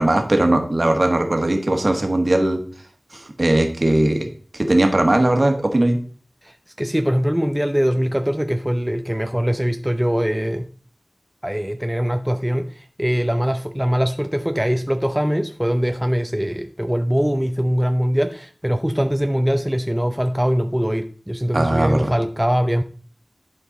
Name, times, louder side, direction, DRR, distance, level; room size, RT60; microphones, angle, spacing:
voice 1, 0.0-2.6 3.1-4.3 4.5-6.0 21.5-22.1, right 1 dB, 50° right, 4 dB, 1.6 m, -19 dB
voice 2, 6.4-10.7 11.4-22.8, equal, 10° right, 7 dB, 0.6 m, -22 dB
11.0 x 4.6 x 4.1 m, 0.43 s
wide cardioid pair, 45°, 0 cm